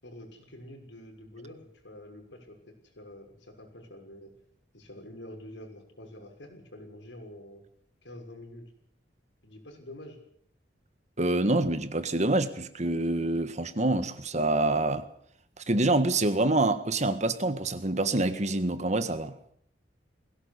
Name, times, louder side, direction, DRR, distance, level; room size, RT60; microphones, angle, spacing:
voice 1, 0.0-4.3 4.7-7.6 8.0-8.7 9.4-10.2, left 1 dB, 85° left, 6.2 m, -47 dB
voice 2, 11.2-15.0 15.6-19.3, right 2 dB, 40° right, 1.6 m, -26 dB
21.5 x 17.5 x 8.4 m
head